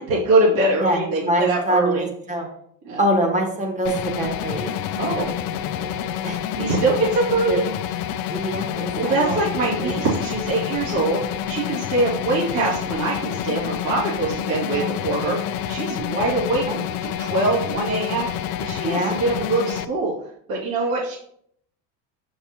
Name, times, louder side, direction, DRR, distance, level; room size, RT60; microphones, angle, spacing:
voice 1, 0.0-2.1 2.8-3.0 5.0-5.3 6.6-7.7 8.9-11.2 11.5-18.3 18.6-20.1 20.5-21.2, right 2 dB, 60° right, -5 dB, 2.6 m, -23 dB
voice 2, 0.8-2.5 3.0-4.8 5.0-5.2 5.7-6.4 7.5-7.6 8.3-9.5 9.8-10.0 14.7-14.9 16.6-16.8 18.8-19.2, right 1 dB, 20° right, 2 dB, 1.6 m, -25 dB
sound 1, 3.8-19.8, left 10 dB, 60° left, 0.6 m, -28 dB
6.7 x 5.8 x 2.9 m, 0.67 s
supercardioid pair, 115°, 39 cm